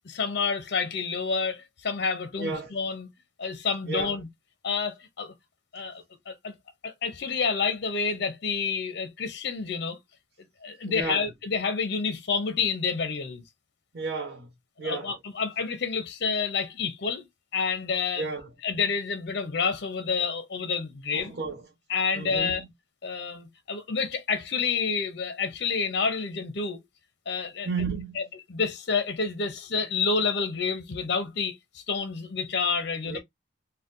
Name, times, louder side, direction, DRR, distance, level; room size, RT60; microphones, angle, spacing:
voice 1, 0.1-3.1 3.4-4.3 4.6-5.3 5.7-6.5 6.8-10.0 10.6-13.4 14.8-17.2 17.5-18.3 18.6-21.3 21.9-22.6 23.0-26.8 27.3-27.7 28.2-28.3 28.5-33.2, left 5 dB, 65° left, 0.7 m, -29 dB
voice 2, 2.4-2.7 3.9-4.2 10.8-11.2 13.9-14.5 14.8-15.1 18.2-18.5 21.1-21.7 22.1-22.7 27.6-28.3 33.0-33.2, right 4 dB, 65° right, 1.1 m, -33 dB
3.9 x 2.2 x 2.6 m
head